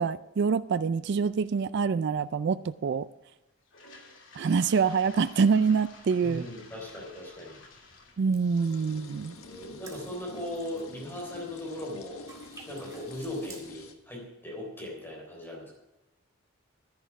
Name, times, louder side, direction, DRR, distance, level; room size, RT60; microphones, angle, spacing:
voice 1, 0.0-3.1 4.3-6.4 8.2-9.4, right 5 dB, 50° right, 0.3 m, -26 dB
Toilet flush, 3.6-11.6, left 3 dB, 60° left, 2.6 m, -54 dB
sound 1, 4.8-13.9, left 2 dB, 80° left, 1.4 m, -50 dB
voice 2, 6.2-7.6 9.4-12.3 12.7-15.7, left 1 dB, 10° left, 3.6 m, -38 dB
sound 2, 8.2-11.9 12.3-13.6, right 3 dB, 15° right, 2.0 m, -54 dB
11.5 x 10.5 x 5.9 m
head